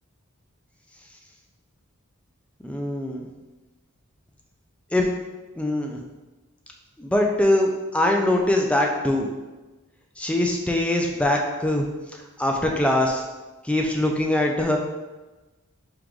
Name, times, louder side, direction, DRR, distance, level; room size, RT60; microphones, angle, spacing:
voice 1, 2.6-3.2 4.9-5.1 5.6-6.0 7.0-9.3 10.2-11.9 12.4-13.2 13.7-14.8, left 1 dB, 5° left, 1 dB, 0.4 m, -22 dB
4.6 x 2.5 x 3.6 m, 1.2 s
head